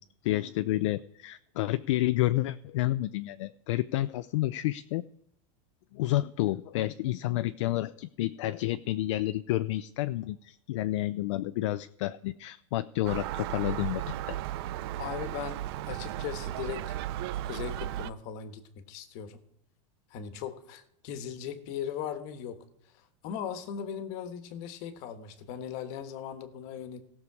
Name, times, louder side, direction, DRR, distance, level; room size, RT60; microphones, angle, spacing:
voice 1, 0.2-5.0 5.9-14.4, left 16 dB, 60° left, 12 dB, 0.5 m, -30 dB
Gull seagull, 13.0-18.1, right 13 dB, 45° right, 0.5 m, -35 dB
voice 2, 15.0-15.6 15.9-16.9 17.4-19.4 20.1-22.6 22.9-27.0, left 8 dB, 40° left, 9 dB, 1.4 m, -38 dB
17.5 x 6.7 x 4.8 m, 0.77 s
supercardioid pair, 165°, 18 cm